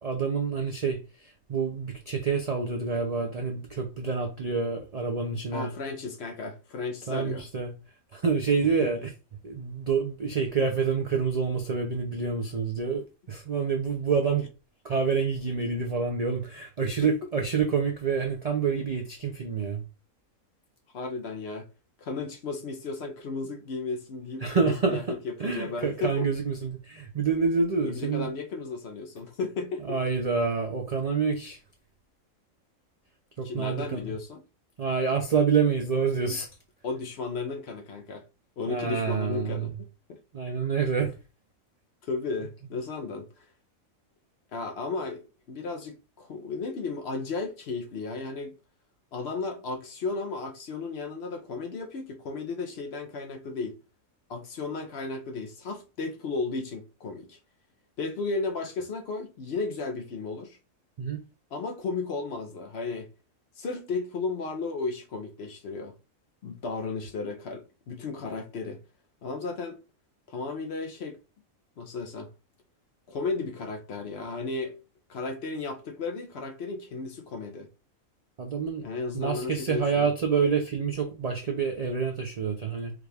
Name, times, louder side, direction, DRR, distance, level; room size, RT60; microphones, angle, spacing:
voice 1, 0.0-5.7 7.1-7.7 8.1-9.1 9.4-14.5 14.8-19.8 24.4-25.1 25.4-28.3 29.9-31.6 33.4-34.1 34.8-36.5 38.7-39.7 40.3-41.1 61.0-61.2 78.4-78.8 79.1-82.9, right 5 dB, 70° right, 0.3 m, -27 dB
voice 2, 5.5-7.4 8.6-8.9 17.0-17.1 20.9-21.7 22.0-26.3 27.8-30.0 33.4-34.4 36.3-36.4 36.8-38.2 38.6-39.7 40.1-40.2 42.1-43.3 44.5-48.5 49.1-53.8 54.3-57.4 58.0-60.6 61.5-63.1 63.6-66.0 66.4-68.8 69.2-69.8 70.3-71.2 71.8-72.3 73.1-74.8 75.1-77.7 78.8-80.1, left 3 dB, 60° left, 0.8 m, -34 dB
4.9 x 2.3 x 3.3 m
omnidirectional pair, 1.5 m